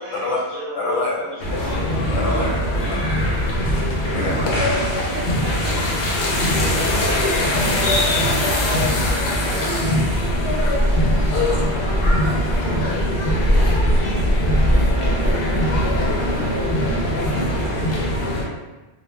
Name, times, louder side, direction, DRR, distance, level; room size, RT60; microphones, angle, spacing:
voice 1, 0.0-2.0, equal, 45° left, -9 dB, 0.3 m, -36 dB
voice 2, 0.7-1.3 2.1-3.1 3.6-3.8 4.1-4.5, left 2 dB, 90° left, -4 dB, 1.0 m, -26 dB
sound 1, 1.4-18.4, equal, 65° left, 0.7 m, -20 dB
sound 2, 4.4-6.1, equal, 5° right, 0.7 m, -34 dB
voice 3, 5.1-7.8 8.2-18.0, right 2 dB, 65° right, -1 dB, 0.7 m, -39 dB
2.1 x 2.0 x 3.2 m, 1.1 s
omnidirectional pair, 1.1 m